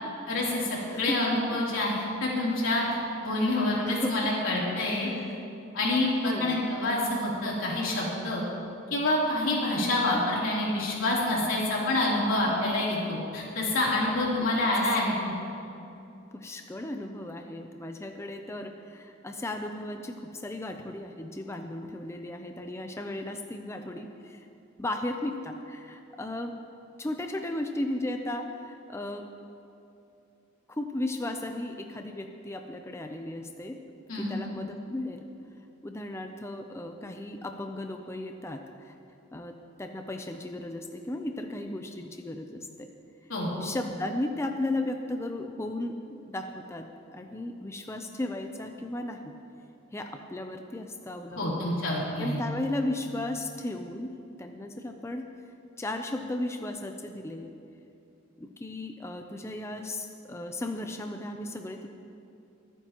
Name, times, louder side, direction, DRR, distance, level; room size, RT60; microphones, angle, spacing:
voice 1, 0.3-5.1 5.7-8.4 8.9-15.3 34.1-34.4 43.3-43.5 51.4-52.4, left 1 dB, 85° left, -5 dB, 3.2 m, -27 dB
voice 2, 0.9-1.4 3.9-4.3 5.0-5.4 6.2-6.6 9.8-9.9 14.3-14.5 16.3-24.5 24.8-26.5 27.0-29.3 30.7-33.8 34.2-35.3 35.8-38.9 39.3-39.5 39.8-42.9 43.6-46.8 47.1-49.3 49.9-51.6 52.2-54.1 54.4-55.3 55.8-57.5 58.4-61.9, left 1 dB, 15° left, 5 dB, 0.5 m, -35 dB
23.5 x 9.1 x 3.0 m, 2.8 s
head